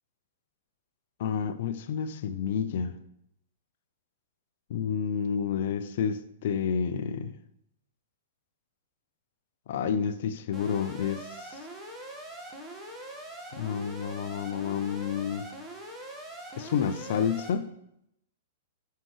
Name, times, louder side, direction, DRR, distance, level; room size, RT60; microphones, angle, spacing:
voice 1, 1.2-3.0 4.7-7.3 9.7-11.6 13.5-15.5 16.6-17.7, left 7 dB, 50° left, 0.6 m, -30 dB
Alarm, 10.5-17.5, right 1 dB, 10° right, 1.6 m, -43 dB
12.5 x 5.6 x 3.2 m
figure-of-eight pair, 105°, 0 cm